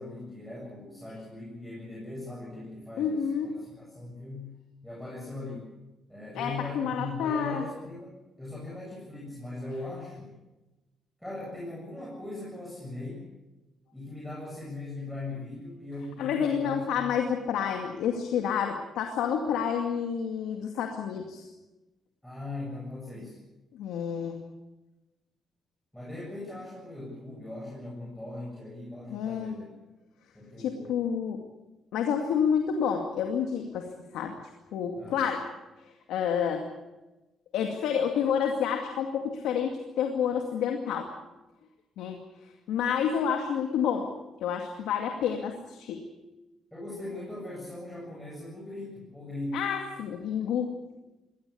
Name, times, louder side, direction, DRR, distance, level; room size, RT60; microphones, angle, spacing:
voice 1, 0.0-3.2 3.5-4.5 4.8-5.7 6.1-10.3 11.2-13.2 13.9-17.2 22.2-23.4 25.9-29.6 30.3-31.1 35.0-35.3 46.7-49.6, left 2 dB, 5° left, -4 dB, 7.8 m, -39 dB
voice 2, 3.0-3.5 6.3-7.6 16.2-21.5 23.7-24.4 29.1-29.5 30.6-31.4 31.9-33.9 34.1-34.3 34.7-35.5 36.1-36.7 37.5-41.1 42.0-42.2 42.7-44.1 44.4-46.1 49.5-51.0, left 7 dB, 85° left, 3 dB, 2.2 m, -29 dB
21.5 x 18.0 x 8.5 m, 1.1 s
cardioid pair, 90°, 0 cm